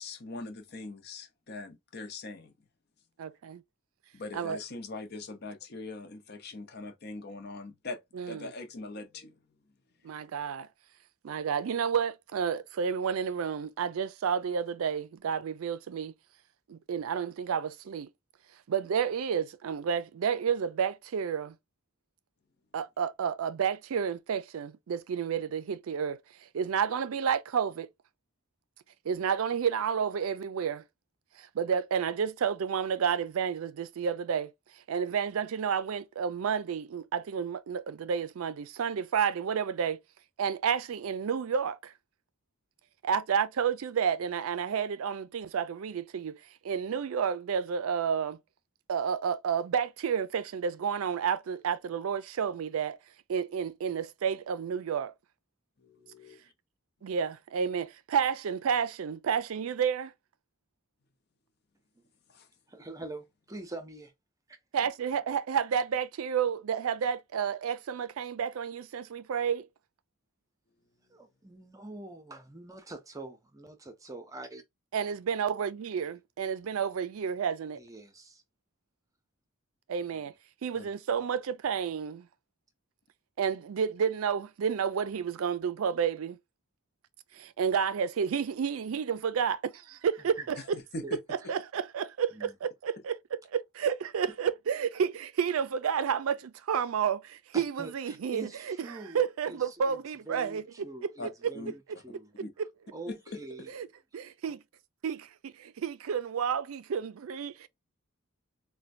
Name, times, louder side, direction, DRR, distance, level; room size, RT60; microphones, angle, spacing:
voice 1, 0.0-2.5 4.1-8.0 8.3-9.4 55.8-56.4 62.3-62.5 80.8-80.9 90.6-90.7 90.9-91.2 101.2-101.7 102.4-102.5 103.1-103.2, left 2 dB, 50° left, 0.7 m, -41 dB
voice 2, 3.2-3.6 4.3-4.6 8.2-8.5 10.0-10.7 11.2-16.1 16.7-18.1 18.7-21.6 22.7-26.2 26.5-27.9 29.1-30.8 31.4-34.5 34.9-40.0 40.4-41.9 43.0-46.4 46.6-48.4 48.9-53.0 53.3-55.1 57.0-60.1 64.7-69.7 74.9-77.8 79.9-80.3 80.6-82.3 83.4-86.4 87.3-90.6 91.5-98.8 99.1-100.6 103.7-103.9 104.1-104.6 105.0-107.7, right 7 dB, 80° right, 0.4 m, -30 dB
voice 3, 62.7-64.1 64.5-64.6 71.1-74.6 77.8-78.4 80.1-80.2 90.2-90.6 91.0-91.1 92.3-92.5 97.5-100.0 100.3-102.3 102.9-103.7, right 2 dB, 15° right, 0.6 m, -44 dB
4.2 x 2.2 x 2.5 m
head